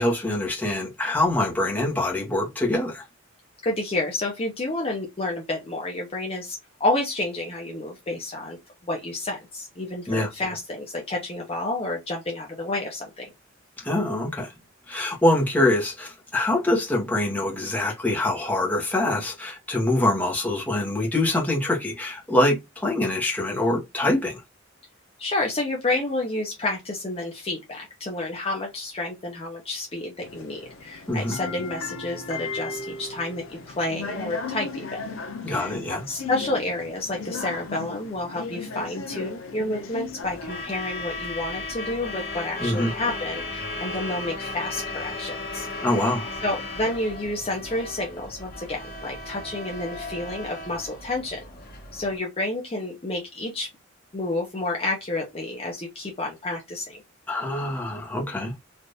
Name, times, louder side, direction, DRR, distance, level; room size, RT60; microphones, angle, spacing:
voice 1, 0.0-3.0 10.1-10.3 13.8-14.5 14.9-24.4 31.1-31.3 35.4-36.0 42.6-42.9 45.8-46.3 57.3-58.5, left 1 dB, 10° left, 1.0 m, -24 dB
voice 2, 3.6-8.6 8.8-13.3 25.2-35.0 35.5-45.7 45.9-46.0 46.4-51.5 51.9-53.7 54.1-57.0, left 2 dB, 30° left, 0.6 m, -30 dB
sound 1, 30.2-40.6, left 4 dB, 75° left, 0.6 m, -36 dB
Truck / Alarm, 40.2-52.2, left 2 dB, 50° left, 1.1 m, -35 dB
3.3 x 2.5 x 2.6 m
head